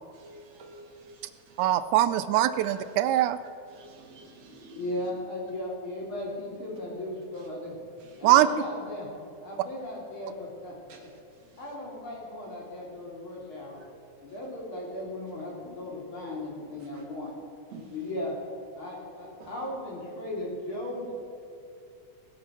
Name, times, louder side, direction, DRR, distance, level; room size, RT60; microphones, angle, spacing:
voice 1, 0.2-1.1 1.5-1.7 2.6-2.8 3.7-4.8 10.9-11.0 17.7-17.8 19.4-19.5, right 3 dB, 60° right, 2 dB, 3.0 m, -48 dB
voice 2, 1.6-3.4 8.2-8.5, right 13 dB, 80° right, 13 dB, 2.0 m, -22 dB
voice 3, 4.8-7.7 8.2-9.1 9.4-10.7 11.6-13.8 14.2-17.3 17.9-18.4 18.8-21.1, left 1 dB, 40° left, -2 dB, 3.9 m, -36 dB
19.0 x 8.3 x 6.2 m, 2.5 s
omnidirectional pair, 3.5 m